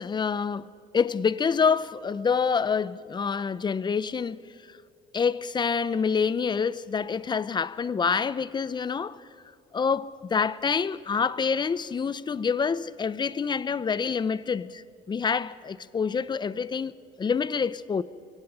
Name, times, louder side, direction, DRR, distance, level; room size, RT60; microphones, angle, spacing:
voice 1, 0.0-4.4 5.1-9.2 9.7-18.0, left 6 dB, 25° left, 0.6 m, -27 dB
25.0 x 23.0 x 5.5 m
cardioid pair, 110°, 17 cm